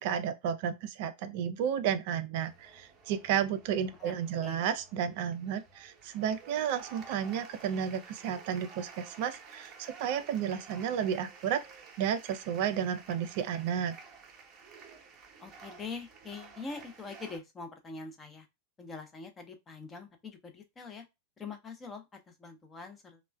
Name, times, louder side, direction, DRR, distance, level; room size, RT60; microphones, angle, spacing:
voice 1, 0.0-11.6 12.0-13.9, right 8 dB, 50° right, 0.3 m, -32 dB
sound 1, 2.4-17.4, right 5 dB, 25° right, 0.7 m, -52 dB
voice 2, 4.0-4.6 15.4-18.5 18.8-21.1 21.4-23.2, left 4 dB, 20° left, 0.6 m, -44 dB
3.0 x 2.1 x 2.2 m
figure-of-eight pair, 90°, 0 cm